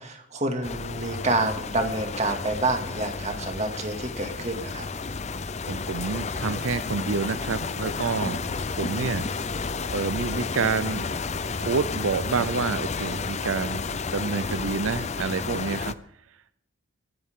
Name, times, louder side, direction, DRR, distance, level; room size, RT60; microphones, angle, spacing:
voice 1, 0.0-4.9, right 2 dB, 35° right, 4 dB, 2.3 m, -28 dB
sound 1, 0.6-15.9, left 4 dB, 35° left, 0.6 m, -31 dB
voice 2, 5.7-9.3 9.9-11.1 11.6-15.9, right 5 dB, 80° right, 13 dB, 0.6 m, -28 dB
24.0 x 12.5 x 3.8 m, 0.68 s
head